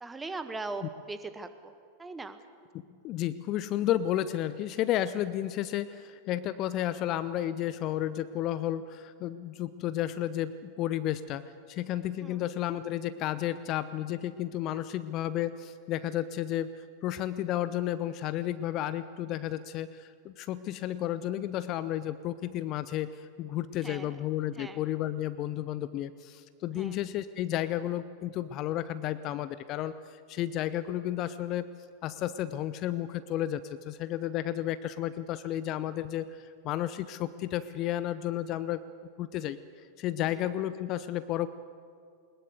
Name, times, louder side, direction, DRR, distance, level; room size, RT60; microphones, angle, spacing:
voice 1, 0.0-1.7 2.0-2.4 12.2-12.5 23.8-24.2 24.5-24.8 26.8-27.0 40.2-40.4, right 3 dB, 10° right, 9 dB, 1.6 m, -40 dB
voice 2, 2.9-11.4 11.7-31.7 32.0-38.8 39.2-41.5, left 12 dB, 35° left, 14 dB, 0.7 m, -32 dB
21.0 x 21.0 x 8.2 m, 2.2 s
figure-of-eight pair, 90°, 0 cm